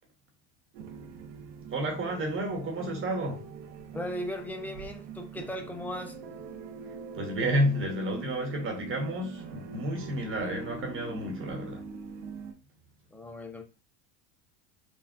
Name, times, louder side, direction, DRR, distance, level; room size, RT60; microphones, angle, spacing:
sound 1, 0.7-12.5, right 5 dB, 80° right, 0.6 m, -43 dB
voice 1, 1.7-3.4 7.1-11.8, equal, 35° right, 1.0 m, -31 dB
voice 2, 3.9-6.2 13.1-13.6, equal, 5° left, 0.3 m, -37 dB
3.6 x 2.1 x 2.3 m
supercardioid pair, 110°, 36 cm